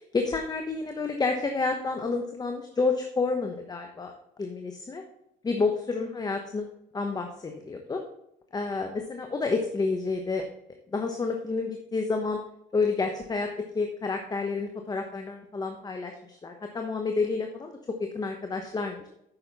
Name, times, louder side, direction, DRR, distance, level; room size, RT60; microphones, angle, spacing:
voice 1, 0.0-5.0 5.4-6.6 6.9-8.0 8.5-10.5 10.9-12.4 12.7-13.5 13.7-19.1, left 4 dB, 25° left, 4 dB, 1.1 m, -29 dB
9.0 x 6.6 x 4.1 m, 0.78 s
cardioid pair, 110°, 17 cm